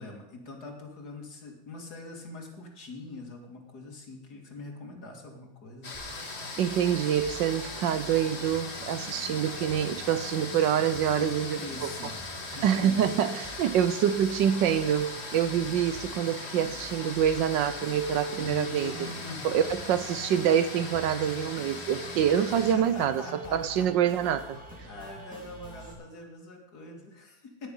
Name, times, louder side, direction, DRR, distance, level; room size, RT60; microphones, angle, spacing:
voice 1, 0.0-5.9 11.6-12.2 12.6-13.0 13.5-13.8 18.4-19.5 22.7-23.9 24.7-27.7, left 2 dB, 50° left, 2.9 m, -43 dB
sound 1, 5.8-22.7, left 3 dB, 35° left, 1.9 m, -40 dB
sound 2, 5.9-25.9, right 1 dB, 5° right, 3.7 m, -46 dB
voice 2, 6.6-11.9 12.6-19.0 19.4-24.6, right 9 dB, 70° right, 1.3 m, -26 dB
16.0 x 10.0 x 5.5 m
omnidirectional pair, 2.1 m